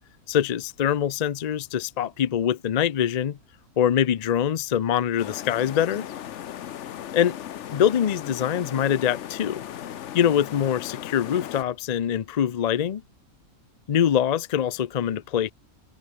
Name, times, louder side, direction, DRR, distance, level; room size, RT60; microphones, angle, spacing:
voice 1, 0.3-3.4 3.8-6.0 7.1-7.4 7.7-9.6 10.1-13.0 13.9-15.5, left 9 dB, 85° left, 0.3 m, -24 dB
sound 1, 5.2-11.6, left 10 dB, 60° left, 1.0 m, -37 dB
open air
omnidirectional pair, 1.6 m